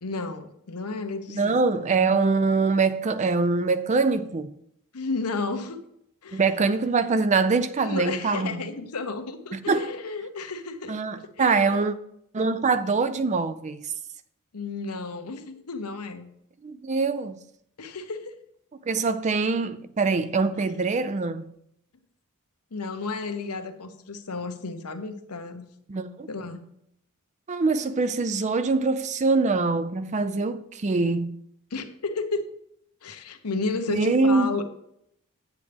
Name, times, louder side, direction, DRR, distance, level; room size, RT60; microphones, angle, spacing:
voice 1, 0.0-1.6 4.9-5.8 6.2-6.4 7.8-10.9 11.4-11.8 14.5-16.3 17.8-18.4 19.7-19.8 20.6-20.7 22.7-25.7 26.3-26.6 31.7-32.5 33.0-34.6, left 3 dB, 85° left, 0.9 m, -32 dB
voice 2, 1.4-4.5 6.3-8.7 9.5-10.0 10.9-11.9 12.3-13.9 16.6-17.4 18.9-21.5 25.9-26.3 27.5-31.4 33.9-34.5, right 4 dB, 30° right, 0.4 m, -24 dB
8.4 x 8.2 x 3.4 m
head